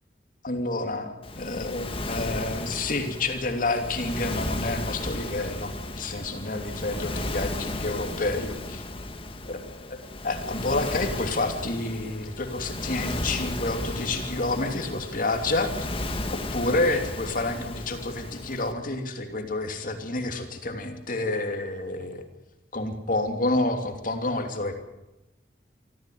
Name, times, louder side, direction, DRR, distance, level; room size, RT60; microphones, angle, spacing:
voice 1, 0.4-8.8 9.4-15.9 16.3-22.2 22.7-24.8, left 2 dB, 50° left, 5 dB, 2.9 m, -29 dB
Waves surf, 1.2-18.7, left 1 dB, 30° left, 2.0 m, -34 dB
24.0 x 15.0 x 9.4 m, 0.95 s
head